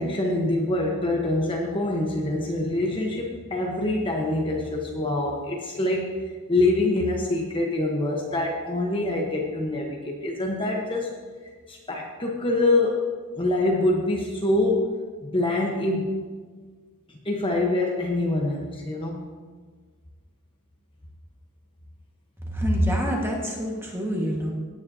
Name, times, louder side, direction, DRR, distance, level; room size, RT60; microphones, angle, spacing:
voice 1, 0.0-6.2 6.5-11.1 11.7-13.0 13.4-14.9 15.2-16.2 17.1-19.3, left 2 dB, 25° left, -1 dB, 1.0 m, -25 dB
voice 2, 22.5-24.5, equal, 10° right, -2 dB, 1.6 m, -25 dB
17.0 x 9.8 x 2.8 m, 1.5 s
head